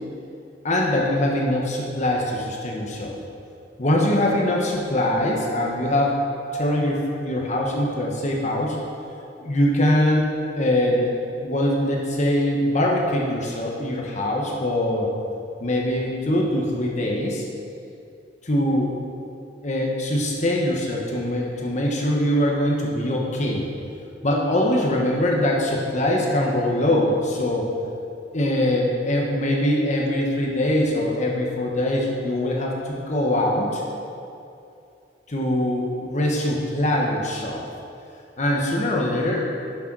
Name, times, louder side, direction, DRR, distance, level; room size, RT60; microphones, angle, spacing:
voice 1, 0.6-3.2 3.8-6.1 6.5-8.8 9.4-10.3 10.6-11.1 11.4-15.1 15.6-17.4 18.4-18.9 19.6-23.7 24.2-27.7 28.3-33.8 35.3-37.7 38.4-39.5, left 1 dB, 40° left, -1 dB, 1.1 m, -22 dB
10.0 x 6.5 x 6.0 m, 2.6 s
head